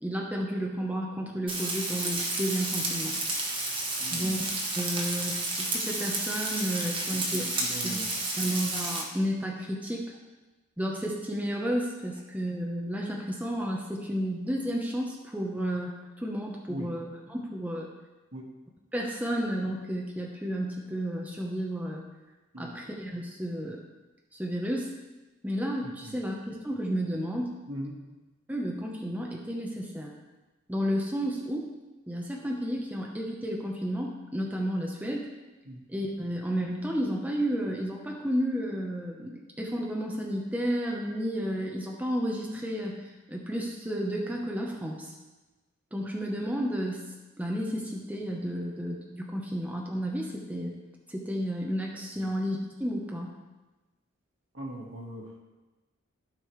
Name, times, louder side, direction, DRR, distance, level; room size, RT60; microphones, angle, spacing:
voice 1, 0.0-3.1 4.1-7.5 7.8-8.0 8.4-10.1 10.8-17.9 18.9-22.0 22.6-23.8 24.3-24.9 25.4-26.4 26.6-27.5 28.5-30.1 30.7-31.7 32.1-35.3 35.9-42.9 43.3-45.1 45.9-50.7 51.1-53.3, equal, 10° right, -1 dB, 0.8 m, -32 dB
Frying (food), 1.5-9.0, right 2 dB, 25° right, 1.2 m, -31 dB
voice 2, 4.0-4.3 7.3-8.0 16.7-16.9 18.3-18.5 22.5-22.7 27.7-27.9 35.7-35.8 54.5-55.3, right 1 dB, 65° right, -1 dB, 1.7 m, -39 dB
15.5 x 5.1 x 3.2 m, 1.2 s
head